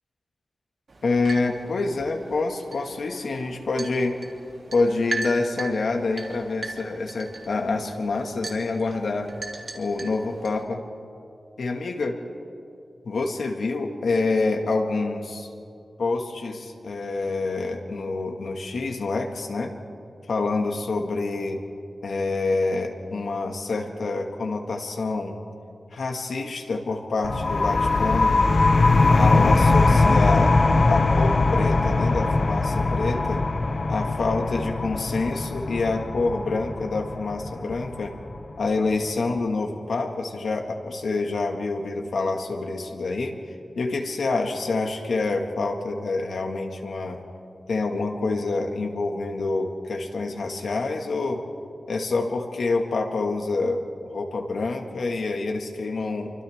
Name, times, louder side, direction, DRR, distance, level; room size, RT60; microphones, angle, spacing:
sound 1, 0.9-10.6, right 3 dB, 55° right, 2.9 m, -38 dB
voice 1, 1.0-4.1 4.7-9.3 9.7-10.8 11.6-12.1 13.0-15.5 16.0-19.7 20.3-21.6 22.0-25.4 25.9-28.4 29.1-30.6 30.9-33.4 33.9-38.1 38.6-43.4 43.8-47.2 47.7-51.4 51.9-53.8 54.1-56.3, left 3 dB, 80° left, 3 dB, 1.9 m, -27 dB
sound 2, 27.2-38.6, left 3 dB, 45° left, 0.8 m, -21 dB
29.5 x 24.5 x 3.7 m, 2.6 s
wide cardioid pair, 125°, 0 cm